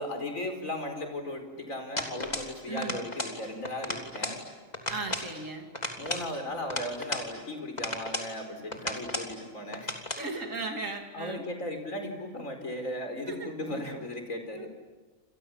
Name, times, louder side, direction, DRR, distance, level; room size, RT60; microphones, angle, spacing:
voice 1, 0.0-4.4 6.0-9.9 11.1-14.7, left 1 dB, 75° left, 5 dB, 5.1 m, -36 dB
tin can, 2.0-2.5 2.8-3.4 3.7-4.4 4.7-5.3 5.7-7.3 7.8-8.3 8.7-9.3 9.7-10.3, left 1 dB, 30° left, 3.4 m, -34 dB
voice 2, 2.7-3.1 4.9-5.7 10.2-11.4 13.3-13.8 14.5-14.7, right 3 dB, 70° right, 3 dB, 3.1 m, -37 dB
29.5 x 27.5 x 7.3 m, 1.3 s
omnidirectional pair, 1.4 m